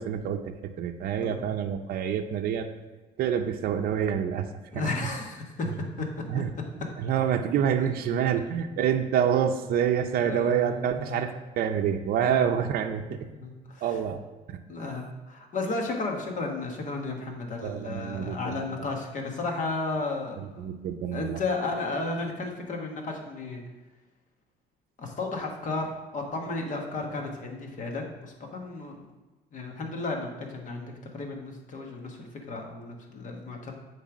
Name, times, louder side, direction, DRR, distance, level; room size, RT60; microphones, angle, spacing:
voice 1, 0.0-2.7 3.2-4.5 4.7-4.9 6.3-6.5 7.0-13.0 13.8-14.2 17.6-18.7 20.6-21.4, right 8 dB, 60° right, 5 dB, 0.6 m, -27 dB
voice 2, 4.7-6.1 6.3-6.4 10.2-11.3 12.3-12.5 13.2-14.0 14.7-20.6 21.1-23.6 25.0-29.0 29.5-33.8, left 3 dB, 50° left, 2 dB, 1.5 m, -33 dB
8.2 x 3.4 x 6.1 m, 1.2 s
cardioid pair, 110°, 17 cm